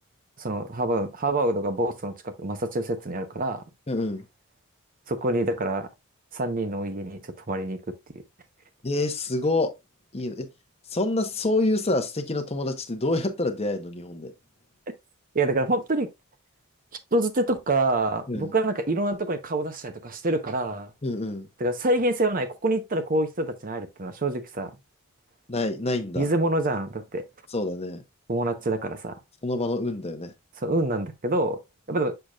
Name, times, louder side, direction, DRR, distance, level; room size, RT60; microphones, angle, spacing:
voice 1, 0.4-3.6 5.1-5.9 6.3-7.8 8.1-8.2 15.3-16.1 17.1-20.9 21.6-24.7 26.2-27.2 28.3-29.2 30.6-31.6 31.9-32.1, right 2 dB, 40° right, 0.9 m, -26 dB
voice 2, 3.9-4.3 8.8-9.7 10.1-10.5 10.9-14.3 18.3-18.5 21.0-21.5 25.5-26.3 27.5-28.0 29.4-30.3, left 2 dB, 30° left, 1.0 m, -27 dB
6.7 x 5.9 x 2.4 m
head